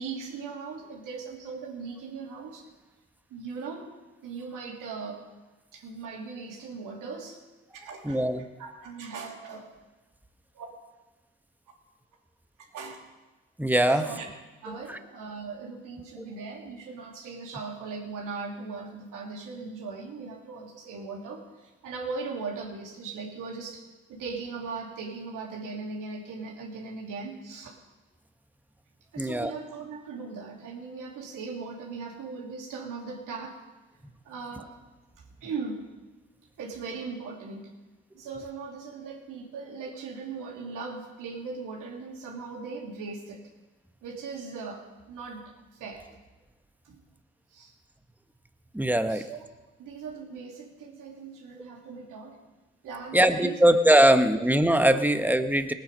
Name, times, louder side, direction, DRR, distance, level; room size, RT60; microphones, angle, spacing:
voice 1, 0.0-2.6 3.3-3.9 4.2-5.2 5.7-7.4 7.7-8.2 8.6-9.7 10.5-10.7 12.7-13.0 13.9-14.2 14.6-23.8 24.1-27.8 29.1-33.6 34.2-34.7 35.2-35.9 36.6-37.7 38.1-43.4 44.0-45.4 45.8-46.1 46.8-47.0 47.5-47.7 49.1-49.4 49.8-52.4 52.8-53.6, right 4 dB, 80° right, -1 dB, 2.8 m, -39 dB
voice 2, 8.0-8.4 13.6-14.1 14.9-15.0 29.2-29.5 48.7-49.2 53.1-55.7, right 1 dB, 5° right, 8 dB, 1.3 m, -21 dB
19.0 x 9.0 x 5.3 m, 1.2 s
supercardioid pair, 45°, 32 cm